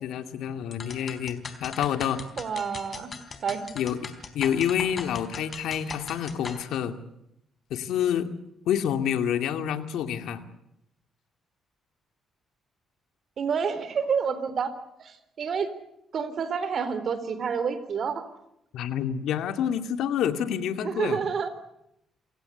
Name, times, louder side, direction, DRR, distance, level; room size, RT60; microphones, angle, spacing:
voice 1, 0.0-2.2 3.7-7.0 7.7-8.3 8.7-10.4 18.7-21.2, left 9 dB, 80° left, 9 dB, 2.4 m, -28 dB
sound 1, 0.7-6.6, left 5 dB, 40° left, 4.0 m, -40 dB
voice 2, 2.4-3.1 3.4-3.7 13.4-14.7 15.0-15.7 16.1-18.3 20.8-21.5, right 6 dB, 55° right, 13 dB, 3.9 m, -28 dB
28.5 x 17.0 x 8.3 m, 0.81 s
cardioid pair, 90°, 0 cm